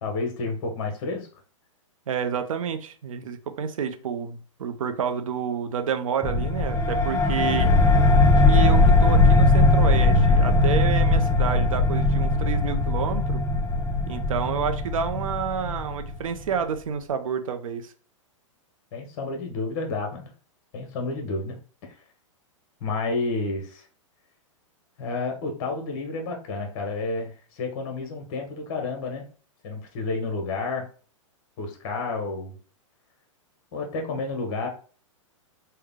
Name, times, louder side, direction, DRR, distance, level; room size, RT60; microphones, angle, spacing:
voice 1, 0.0-1.3 18.9-20.3 20.7-22.0 22.8-23.8 25.0-29.3 29.6-30.9 31.6-32.6 33.7-34.7, left 3 dB, 50° left, 3 dB, 1.2 m, -30 dB
voice 2, 2.1-7.7 8.4-13.4 14.1-17.9, right 7 dB, 85° right, 8 dB, 0.6 m, -29 dB
sound 1, 6.2-16.4, left 2 dB, 15° left, 0.7 m, -20 dB
3.3 x 2.2 x 3.6 m, 0.39 s
hypercardioid pair, 135°, 17 cm